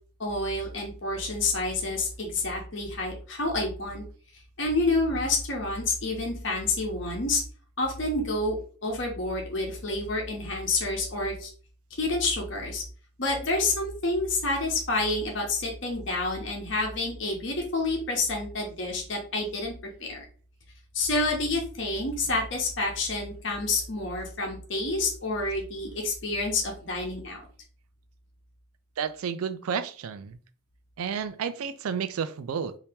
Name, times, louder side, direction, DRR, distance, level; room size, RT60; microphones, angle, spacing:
voice 1, 0.2-4.0 4.6-7.4 7.8-8.6 8.8-11.5 12.0-12.8 13.2-19.7 20.0-20.2 20.9-27.4, left 2 dB, 55° left, 0.9 m, -28 dB
voice 2, 29.0-30.4 31.0-32.8, right 7 dB, 85° right, 0.4 m, -31 dB
2.8 x 2.8 x 3.5 m
head